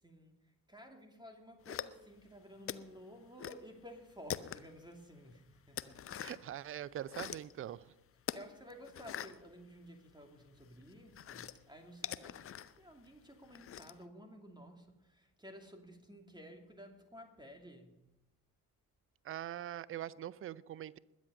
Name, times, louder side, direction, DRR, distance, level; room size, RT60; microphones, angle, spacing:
voice 1, 0.0-6.4 8.2-12.5 12.8-18.0, equal, 10° right, 4 dB, 2.6 m, -54 dB
sound 1, 1.6-2.3 2.6-3.6 3.9-4.9 5.2-6.5 6.9-7.5 8.2-10.2 10.6-14.0, left 9 dB, 30° left, 0.6 m, -44 dB
voice 2, 6.2-7.9 19.2-21.0, right 11 dB, 30° right, 21 dB, 0.5 m, -43 dB
20.5 x 8.2 x 5.3 m, 0.94 s
figure-of-eight pair, 45°, 49 cm